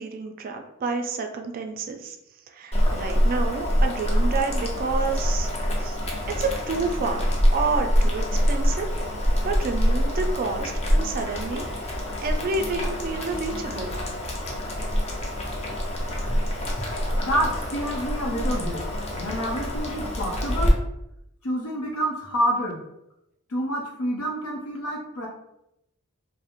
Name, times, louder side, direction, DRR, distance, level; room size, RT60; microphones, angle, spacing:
voice 1, 0.0-2.2 2.5-5.5 5.8-6.0 6.4-7.2 7.5-8.9 9.4-12.0 12.2-14.0, right 4 dB, 40° right, 5 dB, 0.3 m, -29 dB
Boiling, 2.7-20.7, equal, 30° left, 0.5 m, -25 dB
voice 2, 17.2-18.9 19.2-20.7 21.4-22.8 23.5-25.3, equal, 90° left, -1 dB, 0.7 m, -28 dB
2.4 x 2.0 x 2.9 m, 0.84 s
head